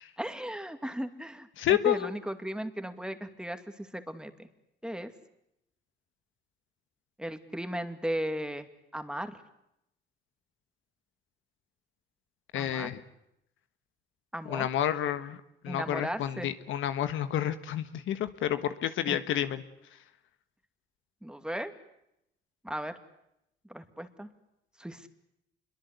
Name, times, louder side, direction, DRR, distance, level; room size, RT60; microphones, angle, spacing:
voice 1, 0.2-4.5 4.8-5.1 7.2-8.7 8.9-9.4 12.5-12.9 14.3-14.7 15.7-16.5 19.1-19.2 21.2-21.7 22.6-22.9 23.7-24.3 24.8-25.1, right 1 dB, 5° right, 8 dB, 2.4 m, -36 dB
voice 2, 1.6-2.1 12.5-13.0 14.5-15.4 15.6-19.6, left 11 dB, 80° left, 11 dB, 1.4 m, -29 dB
27.0 x 23.0 x 8.3 m, 0.82 s
cardioid pair, 90°, 20 cm